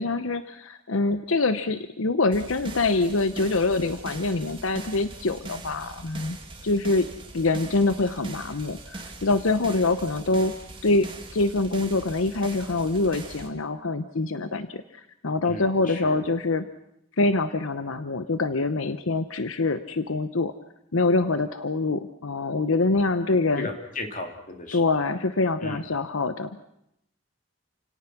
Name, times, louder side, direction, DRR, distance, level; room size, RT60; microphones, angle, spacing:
voice 1, 0.0-6.4 6.6-7.1 7.3-10.5 10.8-16.6 17.2-20.5 20.9-23.7 24.7-26.7, left 3 dB, 75° left, 11 dB, 0.9 m, -25 dB
sound 1, 2.3-13.5, right 2 dB, 25° right, 2.1 m, -41 dB
voice 2, 15.4-16.2 23.6-24.8 25.6-25.8, left 2 dB, 40° left, 4 dB, 3.0 m, -35 dB
29.0 x 17.5 x 6.0 m, 0.80 s
head